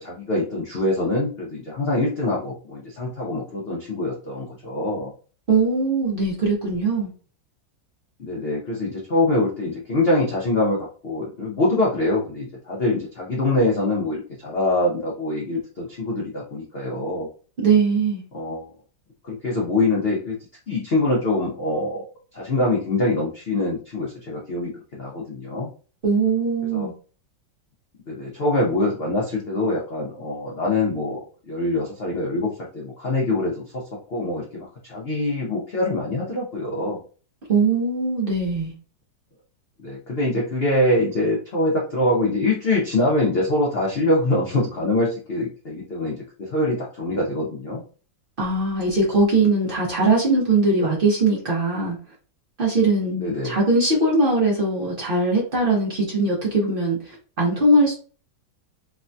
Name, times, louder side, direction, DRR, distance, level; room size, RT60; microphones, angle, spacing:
voice 1, 0.0-5.1 8.2-10.8 11.0-17.3 18.3-18.7 19.2-20.4 20.7-22.0 22.3-25.7 26.7-26.9 28.1-33.8 34.1-37.0 39.8-47.8 53.2-53.6, left 2 dB, 75° left, 0.5 m, -24 dB
voice 2, 5.5-7.1 17.6-18.2 26.0-26.9 37.5-38.7 48.4-52.0 52.6-58.0, right 3 dB, 55° right, 0.6 m, -20 dB
3.3 x 2.2 x 2.5 m
omnidirectional pair, 2.0 m